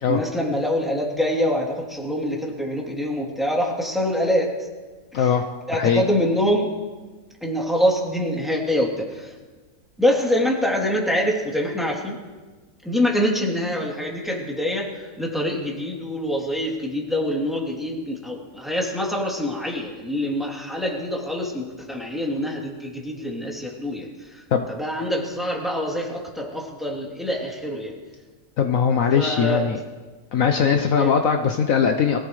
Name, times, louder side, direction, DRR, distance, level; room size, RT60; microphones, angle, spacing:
voice 1, 0.0-4.6 5.1-5.2 5.7-6.7 7.4-9.3 10.0-12.2 12.8-24.4 24.7-28.0 29.1-29.7 31.0-31.1, equal, ahead, -3 dB, 3.0 m, -25 dB
voice 2, 5.1-5.4 5.7-6.0 24.5-24.7 28.6-29.8 30.3-32.2, left 7 dB, 65° left, 5 dB, 1.2 m, -20 dB
23.0 x 17.0 x 3.2 m, 1.3 s
omnidirectional pair, 1.6 m